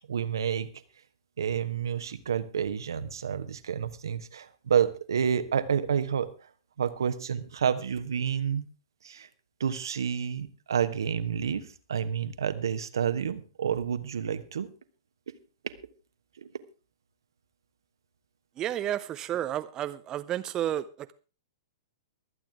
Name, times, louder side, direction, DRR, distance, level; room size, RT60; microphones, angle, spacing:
voice 1, 0.1-0.7 1.4-6.5 6.8-8.7 9.0-9.3 9.6-14.7 16.4-16.5, right 7 dB, 70° right, 11 dB, 1.2 m, -29 dB
voice 2, 18.6-21.1, right 11 dB, 25° right, 11 dB, 0.6 m, -31 dB
23.5 x 8.8 x 3.5 m, 0.34 s
figure-of-eight pair, 110°, 2 cm